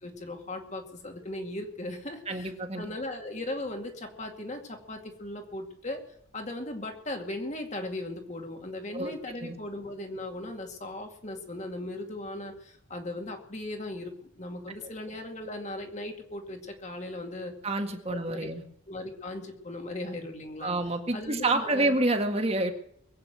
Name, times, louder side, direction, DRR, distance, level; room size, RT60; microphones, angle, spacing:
voice 1, 0.0-6.0 6.3-17.5 18.0-18.5 18.9-20.7 21.1-22.0, left 1 dB, 35° left, 3 dB, 2.3 m, -38 dB
voice 2, 2.3-2.8 8.9-9.1 9.4-9.6 17.6-18.6 20.6-22.7, right 2 dB, 30° right, 5 dB, 1.8 m, -28 dB
22.0 x 8.7 x 6.4 m, 0.70 s
head